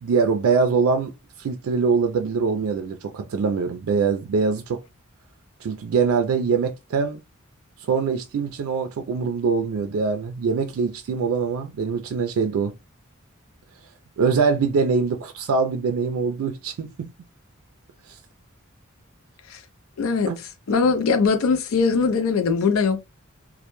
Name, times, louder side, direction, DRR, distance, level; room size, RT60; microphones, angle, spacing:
voice 1, 0.0-1.1 1.4-4.8 5.6-7.2 7.8-12.7 14.2-17.1 18.1-18.2 20.3-20.4, right 5 dB, 85° right, 0.3 m, -23 dB
voice 2, 20.0-20.3 20.7-23.0, left 5 dB, 80° left, 0.5 m, -21 dB
2.1 x 2.1 x 2.9 m
head